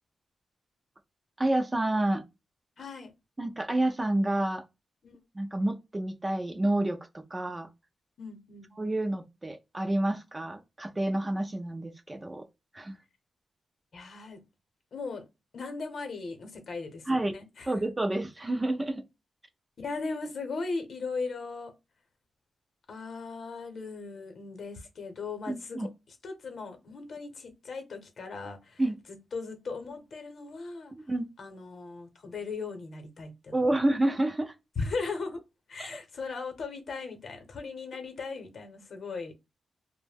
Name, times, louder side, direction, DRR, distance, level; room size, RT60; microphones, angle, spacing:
voice 1, 1.4-2.2 3.4-4.6 5.3-7.7 8.8-12.5 12.7-13.0 17.1-17.3 17.7-19.0 25.5-25.9 28.8-29.0 31.1-31.3 33.5-34.5 35.8-36.0, right 1 dB, 15° right, 0.3 m, -29 dB
voice 2, 2.8-3.1 5.0-5.2 8.2-8.7 13.9-14.4 14.9-15.2 15.5-17.7 19.8-21.7 22.9-28.8 29.3-30.9 31.4-33.6 34.8-35.4 35.7-39.3, left 4 dB, 55° left, 0.8 m, -38 dB
2.6 x 2.1 x 3.3 m
wide cardioid pair, 140°, 0 cm